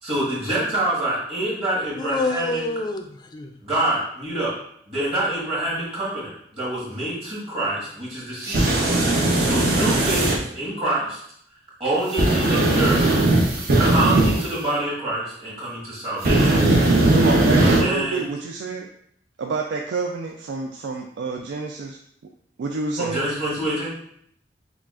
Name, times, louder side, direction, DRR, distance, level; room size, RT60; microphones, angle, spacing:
voice 1, 0.0-2.6 3.6-4.5 4.9-8.7 9.4-10.3 10.5-11.2 11.8-13.0 13.8-17.0 17.8-18.3 23.0-23.9, right 1 dB, 35° right, -6 dB, 1.5 m, -26 dB
voice 2, 2.0-3.5, left 3 dB, 25° left, 5 dB, 0.3 m, -27 dB
sound 1, 8.4-10.4 12.1-14.5 16.2-17.8, right 2 dB, 55° right, 0.7 m, -18 dB
voice 3, 17.1-18.9 19.4-22.0 22.6-23.3, right 4 dB, 80° right, 1 dB, 0.3 m, -28 dB
5.8 x 2.4 x 2.4 m, 0.68 s
head